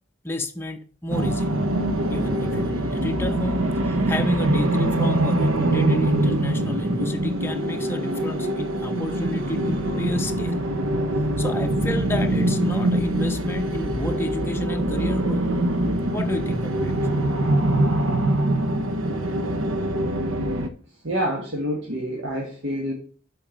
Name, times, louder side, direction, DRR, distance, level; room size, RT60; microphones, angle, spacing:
voice 1, 0.2-1.6 2.1-10.6 11.4-15.5 16.1-17.0, left 1 dB, 10° left, 0.7 m, -31 dB
sound 1, 1.1-20.7, right 1 dB, 85° right, 0.8 m, -23 dB
voice 2, 21.0-22.9, equal, 65° right, 1.4 m, -27 dB
7.3 x 4.4 x 5.0 m
head